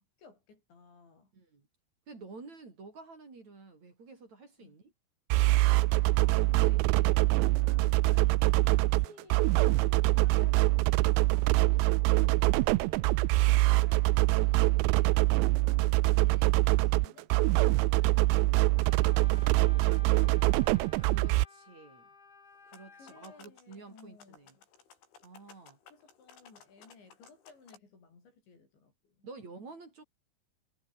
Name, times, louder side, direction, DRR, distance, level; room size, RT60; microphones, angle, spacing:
voice 1, 0.0-1.3 4.6-4.8 6.2-13.1 13.4-20.7 22.9-24.7 25.9-29.3, left 4 dB, 70° left, 10.5 m, -57 dB
voice 2, 1.3-1.7 2.1-4.9 21.0-22.1 22.6-24.6 25.2-25.8 29.2-30.0, right 3 dB, 40° right, 5.8 m, -50 dB
sound 1, 5.3-21.4, right 21 dB, 85° right, 2.8 m, -24 dB
Wind instrument woodwind instrument, 18.8-23.4, left 5 dB, 55° left, 8.0 m, -55 dB
sound 2, 22.6-27.8, left 6 dB, 90° left, 7.7 m, -58 dB
omnidirectional pair, 5.3 m